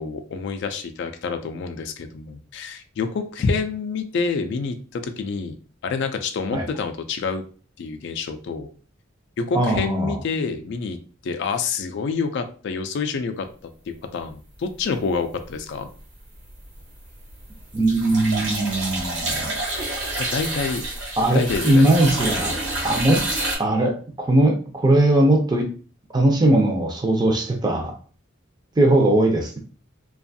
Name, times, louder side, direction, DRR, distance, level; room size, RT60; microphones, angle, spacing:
voice 1, 0.0-5.5 5.8-7.4 7.8-8.7 9.4-11.0 11.2-13.5 13.9-15.9 20.2-20.8 21.3-22.0, left 4 dB, 60° left, 8 dB, 0.3 m, -27 dB
voice 2, 9.5-10.2 17.7-19.5 21.2-22.6 22.8-23.2 23.6-25.7 26.1-27.9 28.8-29.6, right 1 dB, 20° right, 2 dB, 0.5 m, -19 dB
sound 1, 15.4-16.0 16.4-23.6, right 2 dB, 65° right, 1.2 m, -28 dB
2.5 x 2.3 x 2.6 m, 0.39 s
head